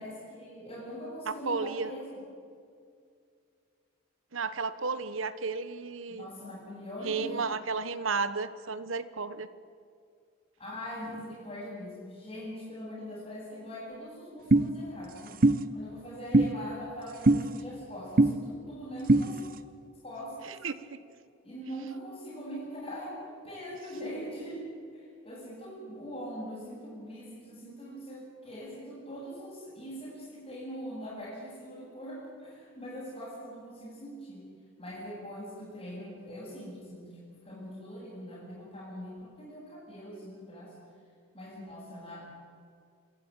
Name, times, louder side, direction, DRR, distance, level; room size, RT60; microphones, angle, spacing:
voice 1, 0.0-2.2 6.1-7.5 10.6-15.4 15.7-19.4 20.0-20.6 21.4-24.7 24.9-34.4 34.8-40.7 41.3-42.2, equal, 25° left, -11 dB, 7.9 m, -42 dB
voice 2, 1.3-1.9 4.3-6.3 7.0-9.5 20.6-21.0, right 4 dB, 80° right, 13 dB, 1.1 m, -33 dB
sound 1, 14.5-14.7 15.4-15.6 16.3-16.5 17.3-17.4 18.2-18.3 19.1-19.2, right 2 dB, 45° right, 0.8 m, -19 dB
27.0 x 13.5 x 9.1 m, 2.3 s
head